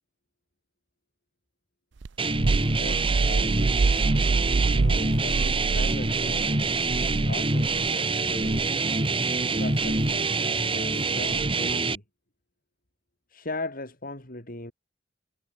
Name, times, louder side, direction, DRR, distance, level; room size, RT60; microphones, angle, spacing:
sound 1, 2.0-7.9 8.3-8.7 9.8-10.1 11.3-11.7, right 3 dB, 65° right, 0.6 m, -27 dB
sound 2, 2.2-12.0, right 3 dB, 30° right, 2.3 m, -26 dB
voice 1, 2.7-3.8 4.6-6.8 7.3-8.8 9.4-12.0 13.3-14.7, left 2 dB, 45° left, 6.2 m, -39 dB
head